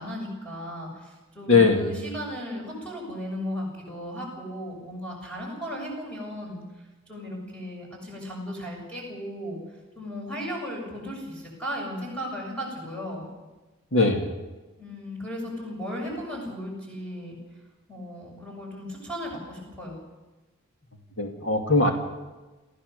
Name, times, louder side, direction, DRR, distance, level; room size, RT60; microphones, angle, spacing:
voice 1, 0.0-6.6 7.1-9.6 9.9-13.3 14.8-17.4 17.9-20.0, equal, 5° left, -3 dB, 6.6 m, -36 dB
voice 2, 1.5-1.9 13.9-14.3 21.2-21.9, left 3 dB, 65° left, 2 dB, 2.5 m, -20 dB
28.5 x 15.0 x 6.8 m, 1.2 s
head